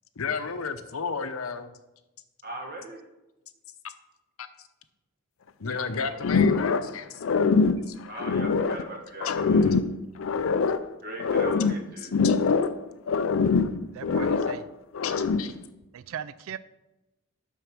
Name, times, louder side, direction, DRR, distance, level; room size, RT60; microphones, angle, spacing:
voice 1, 0.2-1.7 4.4-4.5 5.6-7.2 7.9-8.0 9.2-9.3 12.2-12.4 15.0-15.1 15.4-15.5, left 5 dB, 85° left, 9 dB, 0.8 m, -32 dB
voice 2, 2.4-3.0 5.7-6.2 8.1-9.7 11.0-12.1, right 1 dB, 45° right, 2 dB, 1.6 m, -39 dB
sound 1, 6.2-7.0 7.2-8.9 9.2-10.9 11.2-12.8 13.1-14.6 15.0-15.6, left 4 dB, 70° left, 0.4 m, -24 dB
voice 3, 13.9-14.6 15.9-16.6, right 8 dB, 75° right, 15 dB, 0.4 m, -38 dB
8.1 x 6.2 x 6.0 m, 1.0 s
head